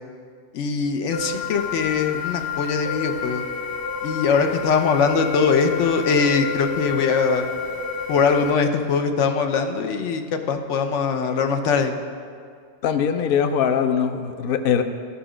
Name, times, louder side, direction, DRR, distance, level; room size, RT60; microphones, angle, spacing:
voice 1, 0.5-3.4 4.0-7.5 8.1-12.0, left 5 dB, 90° left, 7 dB, 1.0 m, -22 dB
sound 1, 1.1-8.5, left 4 dB, 25° left, 0.6 m, -29 dB
voice 2, 12.8-14.8, left 7 dB, 60° left, 8 dB, 0.7 m, -21 dB
13.0 x 5.2 x 5.0 m, 2.2 s
omnidirectional pair, 1.2 m